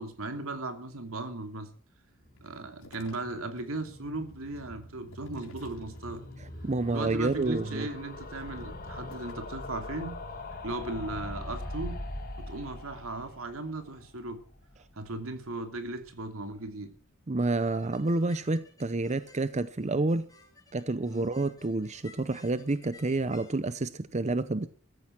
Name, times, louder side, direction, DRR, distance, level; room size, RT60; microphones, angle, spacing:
voice 1, 0.0-1.7 2.4-6.2 6.9-10.1 10.6-12.0 12.4-14.4 14.9-16.9 21.1-21.3, right 2 dB, 75° right, 2.9 m, -37 dB
sound 1, 2.1-15.2 15.5-15.6 15.8-15.9 16.1-16.2, left 2 dB, 45° left, 5.5 m, -42 dB
sound 2, 2.4-3.6 4.0-6.3 6.8-7.7 8.2-9.6, left 2 dB, 75° left, 5.1 m, -56 dB
voice 2, 6.4-7.9 17.3-20.3 20.7-24.7, right 2 dB, 35° right, 0.7 m, -29 dB
sound 3, 17.6-23.5, left 3 dB, 15° left, 5.1 m, -57 dB
14.5 x 14.5 x 5.9 m
head